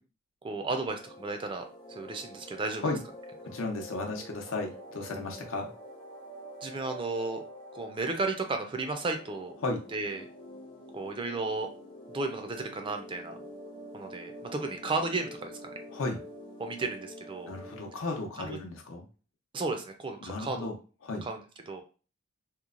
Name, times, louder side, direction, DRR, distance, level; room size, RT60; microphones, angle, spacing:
voice 1, 0.4-2.9 6.6-7.4 7.7-9.5 9.9-10.3 10.9-11.7 12.1-13.4 13.9-15.7 16.6-17.5 18.4-18.6 19.5-20.7 21.2-21.4 21.7-21.8, right 3 dB, 25° right, 5 dB, 0.4 m, -34 dB
sound 1, 0.9-17.9, equal, 25° left, 0.6 m, -47 dB
voice 2, 3.5-5.7 9.6-9.8 15.9-16.2 17.5-19.1 20.2-20.7 21.0-21.3, left 2 dB, 80° left, 2 dB, 0.7 m, -34 dB
2.9 x 2.1 x 2.4 m, 0.36 s
head